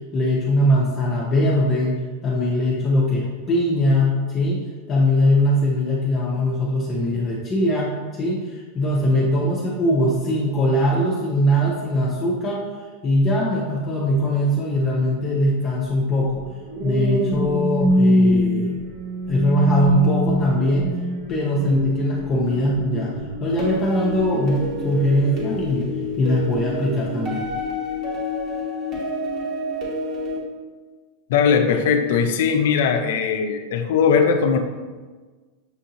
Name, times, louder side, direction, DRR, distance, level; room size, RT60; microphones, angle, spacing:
voice 1, 0.1-7.9 8.2-12.7 13.0-16.4 16.8-18.8 19.3-20.9 21.3-23.1 23.4-25.9 26.2-27.4, left 1 dB, 25° left, -5 dB, 0.6 m, -21 dB
sound 1, 16.3-26.9 27.4-27.7, equal, 75° right, 0.9 m, -25 dB
sound 2, 23.6-30.4, left 1 dB, 35° right, 1.1 m, -28 dB
voice 2, 31.3-34.6, left 6 dB, 70° left, 6 dB, 0.4 m, -19 dB
6.3 x 2.6 x 2.8 m, 1.4 s
supercardioid pair, 150°, 0 cm